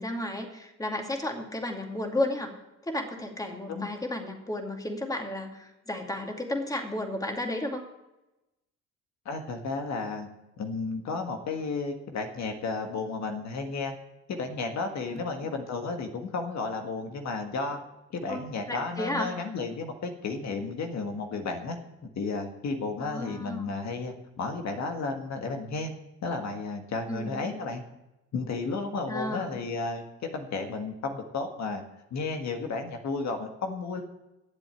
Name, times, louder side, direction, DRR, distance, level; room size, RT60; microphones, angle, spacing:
voice 1, 0.0-2.5 2.9-7.9 15.1-15.3 18.3-19.4 23.0-23.7 27.1-27.5 29.1-29.6, left 1 dB, 10° left, 3 dB, 2.3 m, -33 dB
voice 2, 9.2-10.3 10.6-13.9 14.3-17.8 18.1-21.8 22.1-25.9 26.2-27.8 28.3-30.0 30.3-31.8 32.1-34.0, left 3 dB, 65° left, 4 dB, 1.7 m, -33 dB
12.0 x 7.7 x 9.0 m, 0.97 s
cardioid pair, 90°, 30 cm